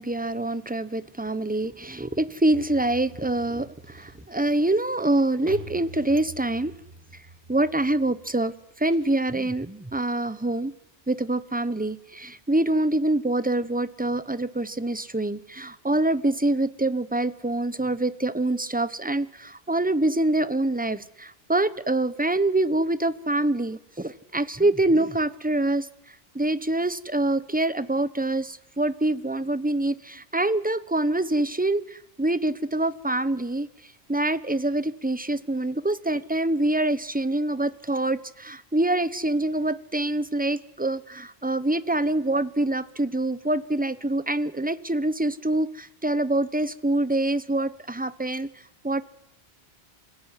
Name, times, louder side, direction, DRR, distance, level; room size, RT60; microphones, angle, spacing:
voice 1, 0.0-6.7 7.5-10.7 11.1-25.9 26.3-33.7 34.1-48.5 48.8-49.0, right 2 dB, 10° right, 14 dB, 0.9 m, -25 dB
sound 1, 2.5-9.5, equal, 55° right, 6.6 m, -47 dB
27.5 x 17.5 x 9.9 m, 0.79 s
omnidirectional pair, 1.1 m